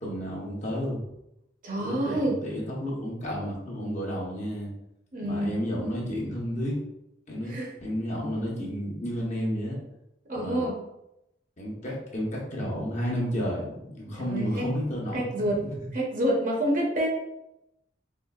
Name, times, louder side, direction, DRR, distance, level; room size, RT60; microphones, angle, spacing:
voice 1, 0.0-1.0 1.8-4.7 5.2-6.8 7.3-9.8 10.3-10.6 11.6-15.6, equal, 40° left, -3 dB, 0.9 m, -31 dB
voice 2, 1.6-2.4 5.1-5.6 7.4-7.7 10.2-10.8 14.1-14.7 15.1-15.6 15.9-17.1, right 1 dB, 45° right, -2 dB, 0.8 m, -28 dB
4.5 x 2.5 x 2.3 m, 0.86 s
head